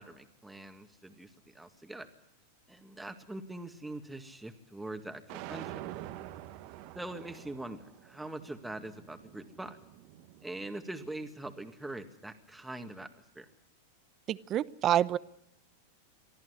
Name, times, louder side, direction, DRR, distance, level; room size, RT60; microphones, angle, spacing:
voice 1, 0.0-2.1 2.7-5.7 6.9-9.8 10.4-13.1 13.4-13.5, right 2 dB, 5° right, 6 dB, 2.0 m, -43 dB
sound 1, 5.3-11.4, right 14 dB, 55° right, 1.5 m, -47 dB
voice 2, 14.3-15.2, right 11 dB, 35° right, 19 dB, 0.8 m, -27 dB
23.5 x 14.0 x 9.8 m, 0.83 s
hypercardioid pair, 105°, 0 cm